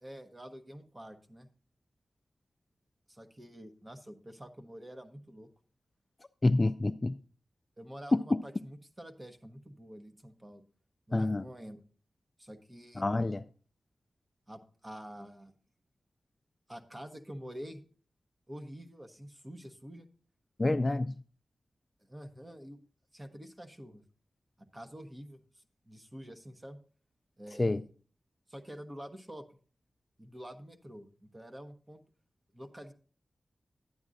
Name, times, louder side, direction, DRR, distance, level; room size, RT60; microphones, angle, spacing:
voice 1, 0.0-1.5 3.1-5.5 7.8-10.6 11.1-11.8 12.4-13.0 14.5-15.5 16.7-17.8 18.5-20.1 22.0-22.8 23.1-24.0 24.7-26.8 27.4-27.9 28.5-29.4 30.2-32.0 32.5-32.9, equal, 20° right, 1.0 m, -47 dB
voice 2, 6.4-7.1 8.1-8.2 11.1-11.4 13.0-13.4 20.6-21.1 27.6-27.8, left 2 dB, 30° left, 0.3 m, -27 dB
11.0 x 8.9 x 2.6 m
wide cardioid pair, 95°, 0 cm